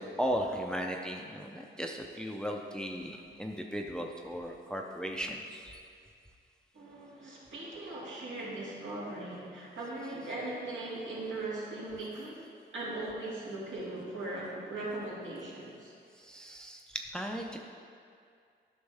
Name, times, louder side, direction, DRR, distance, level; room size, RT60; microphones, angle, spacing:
voice 1, 0.0-5.8 10.0-10.1 16.2-17.6, equal, 5° left, 2 dB, 0.4 m, -36 dB
voice 2, 6.7-15.9, right 2 dB, 75° right, -6 dB, 2.3 m, -39 dB
11.5 x 6.3 x 3.4 m, 2.3 s
wide cardioid pair, 155°, 20 cm